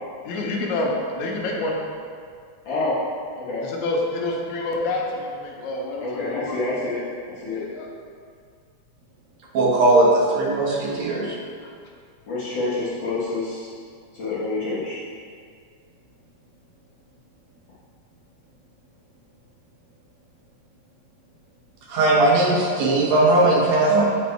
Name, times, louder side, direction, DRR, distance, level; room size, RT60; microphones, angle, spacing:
voice 1, 0.3-1.8 3.6-6.6 7.5-7.9 11.6-11.7, left 2 dB, 80° left, -1 dB, 2.2 m, -27 dB
voice 2, 2.7-3.0 3.4-3.6 6.0-7.0 7.4-7.6 12.3-13.7 14.1-15.0, left 3 dB, 50° left, -9 dB, 1.6 m, -27 dB
voice 3, 9.5-11.4 21.9-24.1, right 2 dB, 70° right, -3 dB, 2.2 m, -18 dB
7.7 x 4.3 x 4.4 m, 2.1 s
omnidirectional pair, 3.4 m